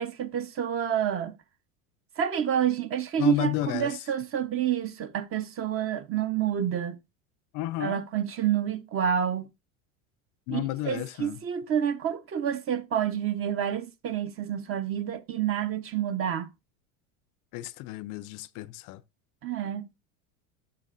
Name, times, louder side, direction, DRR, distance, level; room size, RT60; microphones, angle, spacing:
voice 1, 0.0-1.3 2.2-7.0 7.8-9.5 10.5-16.5 19.4-19.9, right 9 dB, 30° right, 0.9 m, -28 dB
voice 2, 3.2-4.0 7.5-8.0 10.5-11.4 17.5-19.0, left 16 dB, 50° left, 0.5 m, -32 dB
13.5 x 6.8 x 2.5 m
supercardioid pair, 120°, 42 cm